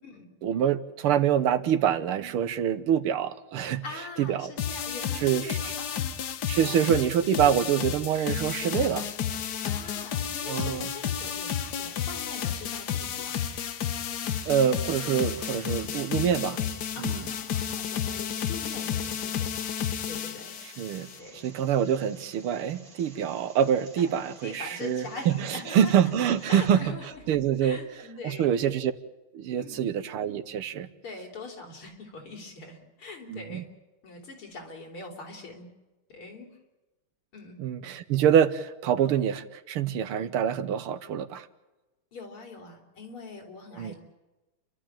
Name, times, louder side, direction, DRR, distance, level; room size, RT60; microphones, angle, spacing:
voice 1, 0.4-3.8 4.2-4.5 5.2-5.7 6.5-9.1 10.5-10.9 14.5-16.6 17.0-17.2 20.8-21.1 21.4-26.8 27.3-27.8 28.2-28.9 29.3-30.9 33.3-33.6 37.6-41.5 43.8-43.9, right 9 dB, 90° right, 12 dB, 1.9 m, -25 dB
voice 2, 3.6-6.1 6.5-6.8 9.6-13.4 16.9-19.7 20.1-20.5 21.2-21.4 24.0-26.0 26.5-28.7 29.6-29.8 31.0-33.7 34.0-35.7 36.1-36.5 37.3-37.6 42.1-44.0, left 3 dB, 85° left, 1 dB, 4.7 m, -43 dB
sound 1, 4.6-21.2, left 9 dB, 60° left, 1.4 m, -32 dB
sound 2, 10.5-26.7, right 3 dB, 55° right, 3.5 m, -53 dB
30.0 x 12.5 x 8.9 m, 1.1 s
omnidirectional pair, 2.3 m